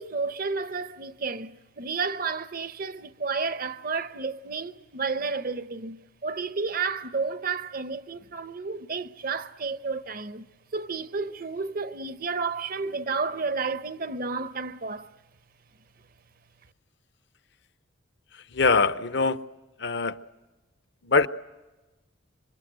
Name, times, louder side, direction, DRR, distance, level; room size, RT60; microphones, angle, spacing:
voice 1, 0.0-10.5 10.7-15.1, right 4 dB, 45° right, 0.8 m, -31 dB
voice 2, 18.5-19.4 19.8-20.2 21.0-21.3, left 4 dB, 55° left, 0.8 m, -22 dB
27.0 x 24.0 x 7.8 m
head